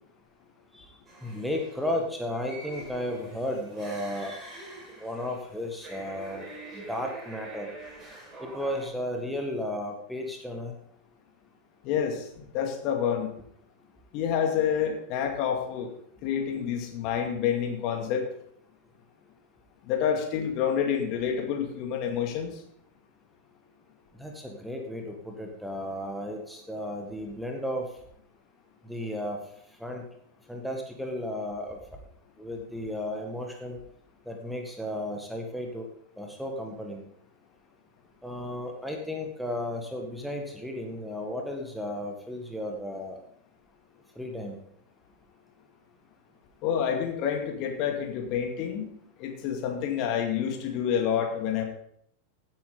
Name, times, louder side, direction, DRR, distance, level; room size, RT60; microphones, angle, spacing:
sound 1, 1.1-8.9, right 2 dB, 20° right, 4.5 m, -45 dB
voice 1, 1.2-4.6 5.0-6.5 6.7-7.7 8.4-10.7 24.2-27.9 28.8-29.4 29.8-30.0 30.5-31.8 32.4-33.8 34.2-35.9 36.2-37.1 38.2-43.2 44.1-44.6, left 1 dB, ahead, 2 dB, 1.7 m, -34 dB
voice 2, 11.8-13.3 14.1-15.9 16.2-18.3 19.8-22.5 46.6-48.9 49.2-51.6, left 8 dB, 40° left, 3 dB, 2.3 m, -28 dB
16.0 x 8.7 x 3.9 m, 0.68 s
figure-of-eight pair, 90°, 0 cm